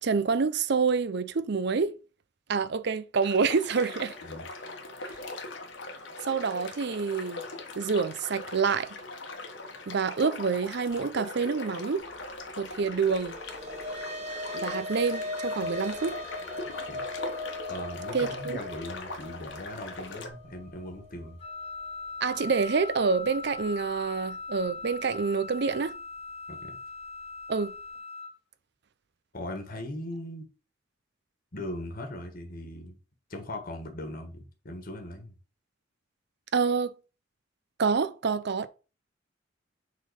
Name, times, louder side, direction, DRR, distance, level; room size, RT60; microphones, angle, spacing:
voice 1, 0.0-2.0 2.5-4.1 6.2-7.5 7.8-9.0 9.9-12.1 12.6-13.4 14.5-16.2 18.1-18.6 22.2-26.0 27.5-27.7 36.5-36.9 37.8-38.7, right 5 dB, 60° right, 0.6 m, -27 dB
sound 1, 3.2-20.3, left 2 dB, 75° left, 1.3 m, -41 dB
sound 2, 13.1-21.7, left 2 dB, 35° right, 3.3 m, -38 dB
voice 2, 17.7-21.4 26.5-26.8 29.3-30.5 31.5-33.0 33.3-35.3, left 1 dB, 50° left, 1.5 m, -39 dB
Wind instrument woodwind instrument, 21.4-28.3, left 3 dB, 30° left, 0.7 m, -40 dB
6.5 x 3.9 x 5.2 m
head